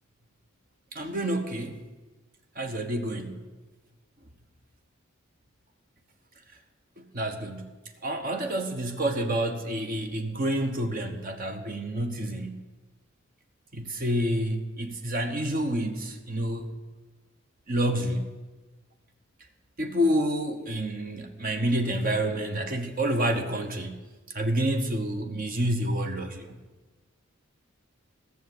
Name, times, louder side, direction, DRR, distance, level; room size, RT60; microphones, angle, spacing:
voice 1, 0.9-1.8 2.6-3.5 7.1-7.7 8.0-12.6 13.7-16.7 17.7-18.3 19.8-24.0 24.3-26.6, right 1 dB, 40° right, 5 dB, 1.0 m, -28 dB
15.5 x 7.0 x 7.7 m, 1.2 s
head